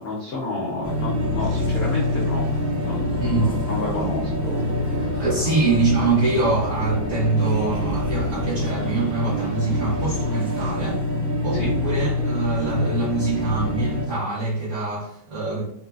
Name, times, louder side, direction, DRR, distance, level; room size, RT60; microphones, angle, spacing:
voice 1, 0.0-2.4 2.8-4.5 4.8-5.1 11.5-11.7, left 2 dB, 80° left, -4 dB, 0.6 m, -30 dB
sound 1, 0.8-14.0, left 2 dB, 5° right, 0.4 m, -26 dB
sound 2, 1.4-10.7, right 3 dB, 80° right, 1.3 m, -39 dB
voice 2, 3.2-3.6 5.2-11.0 11.4-15.6, right 3 dB, 55° right, -6 dB, 0.9 m, -24 dB
3.0 x 2.5 x 2.3 m, 0.71 s
omnidirectional pair, 2.1 m